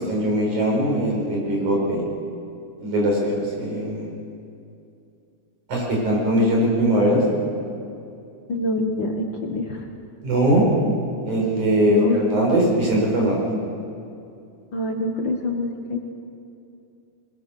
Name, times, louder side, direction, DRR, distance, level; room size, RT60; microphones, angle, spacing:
voice 1, 0.1-2.0 2.8-4.1 5.7-7.2 10.2-10.7 11.2-13.4, right 1 dB, 85° right, -2 dB, 6.4 m, -21 dB
voice 2, 8.5-9.9 11.8-12.2 14.7-16.0, left 2 dB, 50° left, 2 dB, 1.8 m, -25 dB
21.5 x 20.5 x 6.5 m, 2.6 s
omnidirectional pair, 3.4 m